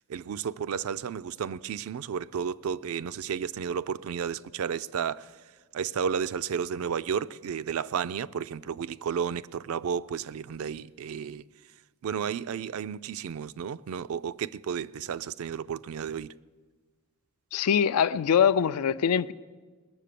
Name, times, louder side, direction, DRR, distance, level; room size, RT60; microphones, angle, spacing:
voice 1, 0.0-5.3 5.7-11.4 12.0-16.3, right 7 dB, 65° right, 0.3 m, -32 dB
voice 2, 17.5-19.3, left 7 dB, 80° left, 0.4 m, -23 dB
20.0 x 7.5 x 6.8 m
head